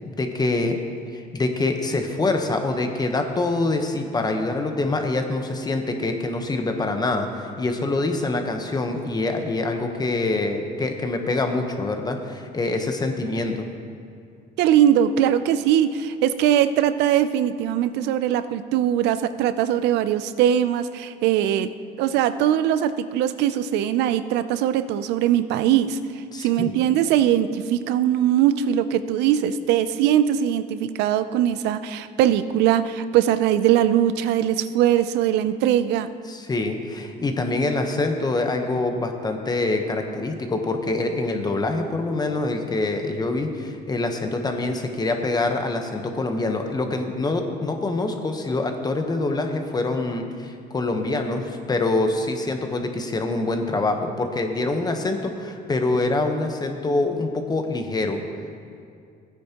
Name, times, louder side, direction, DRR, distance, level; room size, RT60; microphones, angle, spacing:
voice 1, 0.1-0.8 1.1-13.7 26.3-26.7 36.3-58.2, left 2 dB, 25° left, 5 dB, 1.0 m, -25 dB
voice 2, 14.6-21.7 22.0-26.0 26.4-36.1, right 10 dB, 90° right, 12 dB, 0.5 m, -21 dB
15.5 x 9.5 x 3.0 m, 2.3 s
cardioid pair, 110°, 17 cm